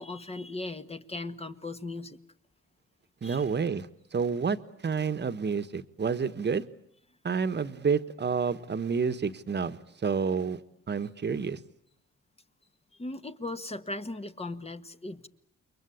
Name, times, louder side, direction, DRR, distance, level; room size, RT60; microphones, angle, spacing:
voice 1, 0.0-2.2 3.2-3.4 12.9-15.3, left 2 dB, 20° left, 9 dB, 1.5 m, -38 dB
voice 2, 3.2-4.6 4.8-6.6 7.2-10.6 10.9-11.6, right 5 dB, 35° right, 11 dB, 1.5 m, -29 dB
29.0 x 22.5 x 8.5 m, 0.74 s
cardioid pair, 90°, 30 cm